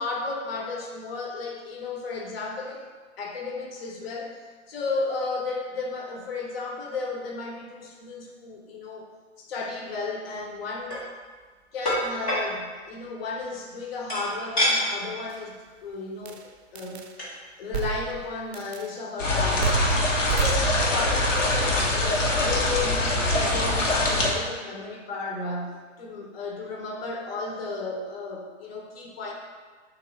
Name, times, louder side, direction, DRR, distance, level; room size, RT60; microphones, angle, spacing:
voice 1, 0.0-2.9 3.2-4.3 4.7-9.1 9.4-11.0 11.7-17.1 17.6-19.8 20.4-29.3, left 3 dB, 50° left, 0 dB, 0.8 m, -33 dB
sound 1, 10.7-11.0 11.8-12.4 14.1-14.8 15.3-15.4 15.7-15.9 16.9-17.0 17.2-17.4, equal, 10° left, 0.3 m, -26 dB
sound 2, 15.3-15.4 16.3-16.4 16.7-17.1 17.7-18.3 18.5-18.9 19.6-21.1, right 7 dB, 60° right, 0.5 m, -29 dB
sound 3, 19.2-24.3, left 2 dB, 85° left, 0.8 m, -23 dB
3.2 x 3.0 x 4.3 m, 1.4 s
figure-of-eight pair, 115°, 37 cm